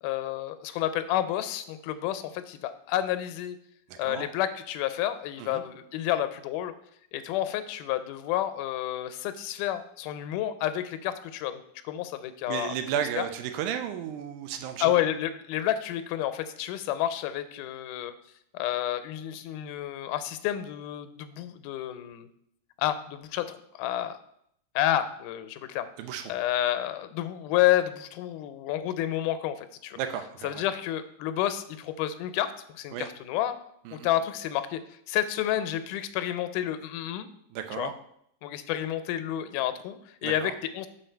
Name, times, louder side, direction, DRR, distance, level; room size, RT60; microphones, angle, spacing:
voice 1, 0.0-3.6 4.0-6.7 7.1-12.8 13.2-13.3 14.8-18.2 18.5-22.3 22.8-24.2 24.8-25.9 26.3-30.0 30.4-33.6 33.9-37.3 37.7-37.9 38.4-40.9, left 12 dB, 85° left, 11 dB, 2.1 m, -30 dB
voice 2, 3.9-4.3 5.4-5.6 12.5-14.9 26.0-26.2 30.0-30.6 32.9-33.1 33.9-34.1 37.5-37.9 40.2-40.5, right 9 dB, 80° right, 7 dB, 2.1 m, -33 dB
6.4 x 5.3 x 4.4 m, 0.71 s
omnidirectional pair, 3.6 m